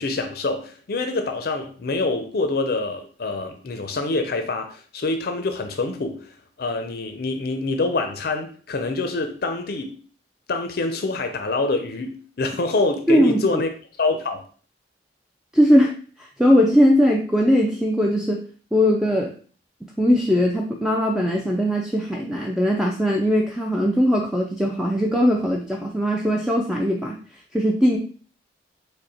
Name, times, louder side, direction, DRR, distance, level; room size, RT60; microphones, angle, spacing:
voice 1, 0.0-6.3 6.6-9.9 10.5-13.7 14.0-14.4, left 3 dB, 55° left, 6 dB, 0.5 m, -26 dB
voice 2, 13.1-13.6 15.5-18.5 18.7-19.3 20.0-27.2 27.5-28.0, equal, 5° right, 0 dB, 0.3 m, -20 dB
5.1 x 2.1 x 4.2 m, 0.42 s
head